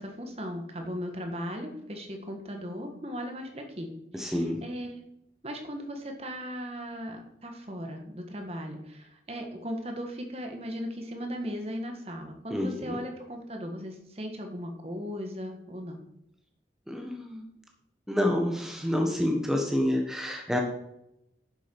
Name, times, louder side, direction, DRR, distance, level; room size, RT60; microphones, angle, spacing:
voice 1, 0.0-5.0 5.4-16.0, equal, 35° right, 4 dB, 1.6 m, -37 dB
voice 2, 4.1-4.6 12.5-13.0 16.9-17.4 18.1-20.6, left 1 dB, 5° right, 1 dB, 1.3 m, -28 dB
10.5 x 7.6 x 5.4 m, 0.81 s
head